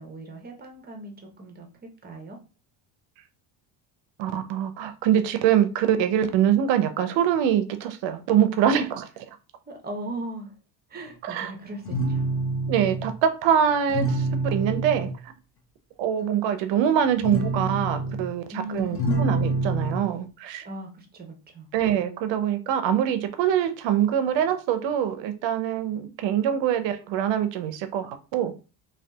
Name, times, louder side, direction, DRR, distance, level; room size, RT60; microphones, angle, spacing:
voice 1, 0.0-2.4 9.7-10.5 10.9-12.3 18.5-19.2 20.6-21.7, right 1 dB, 20° right, 0.7 m, -38 dB
voice 2, 4.2-9.1 11.2-11.5 12.7-15.3 16.0-18.4 18.7-20.6 21.7-28.5, right 9 dB, 65° right, 0.6 m, -24 dB
sound 1, 11.8-13.2 13.9-15.2 17.0-18.3 18.8-20.1, right 2 dB, 25° left, 0.7 m, -26 dB
2.6 x 2.3 x 2.2 m
cardioid pair, 105°, 49 cm